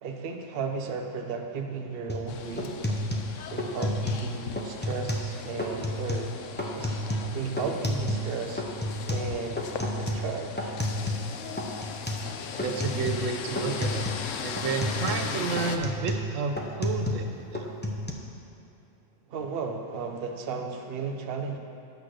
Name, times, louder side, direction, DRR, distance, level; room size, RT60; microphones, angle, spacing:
voice 1, 0.0-2.8 3.5-6.3 6.7-7.0 7.3-8.6 9.0-9.6 10.0-10.8 19.3-21.6, right 5 dB, 55° right, 4 dB, 0.9 m, -34 dB
sound 1, 2.1-2.3 2.6-4.3 4.6-5.3 5.6-6.3 6.6-8.3 8.6-11.3 11.6-12.3 12.6-13.3 13.6-14.3 14.6-17.3 17.5-18.1, left 1 dB, 10° left, 0.6 m, -31 dB
sound 2, 2.3-15.8, left 7 dB, 80° left, 0.9 m, -38 dB
voice 2, 12.6-14.0 14.4-17.7, right 4 dB, 85° right, 5 dB, 1.1 m, -31 dB
8.5 x 6.0 x 6.3 m, 2.7 s
omnidirectional pair, 1.3 m